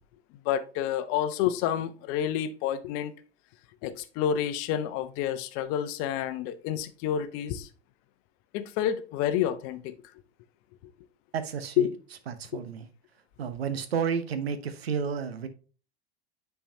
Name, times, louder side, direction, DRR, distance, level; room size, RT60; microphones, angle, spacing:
voice 1, 0.4-3.1 3.8-7.7 8.5-9.9 11.8-11.9, left 10 dB, 45° left, 0.8 m, -29 dB
voice 2, 11.3-11.9 12.3-12.9 13.4-15.5, right 6 dB, 75° right, 1.0 m, -31 dB
10.0 x 4.6 x 2.8 m
figure-of-eight pair, 85°, 31 cm